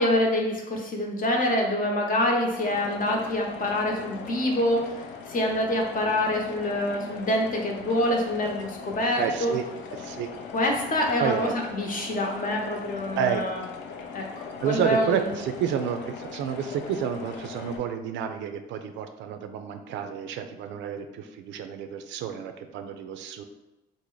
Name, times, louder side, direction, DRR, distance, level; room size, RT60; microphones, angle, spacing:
voice 1, 0.0-5.0 5.3-9.5 10.5-13.6 14.1-14.2 14.6-15.3, left 1 dB, 45° left, 1 dB, 0.9 m, -26 dB
sound 1, 2.5-17.8, left 5 dB, 65° left, 0.5 m, -40 dB
voice 2, 9.2-9.6 10.0-10.3 11.2-11.6 13.2-13.4 14.6-23.4, right 8 dB, 70° right, 7 dB, 0.4 m, -30 dB
3.3 x 2.1 x 3.8 m, 1.0 s
supercardioid pair, 65°, 20 cm